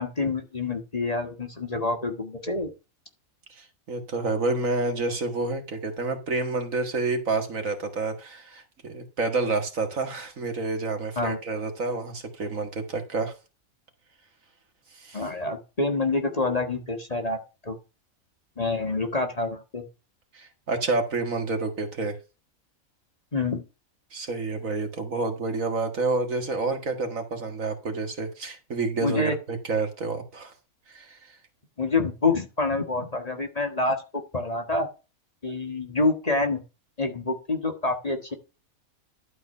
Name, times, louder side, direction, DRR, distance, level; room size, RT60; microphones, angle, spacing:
voice 1, 0.0-2.7 11.2-11.4 15.1-17.8 18.6-19.8 23.3-23.6 29.0-29.3 31.8-34.0 34.3-34.9 35.4-36.6 37.0-38.3, left 3 dB, 30° left, 4 dB, 1.4 m, -27 dB
voice 2, 3.5-13.3 14.9-15.2 20.3-22.2 24.1-30.5 30.9-31.3, right 3 dB, 65° right, 5 dB, 2.1 m, -29 dB
11.5 x 4.7 x 5.4 m, 0.30 s
omnidirectional pair, 1.5 m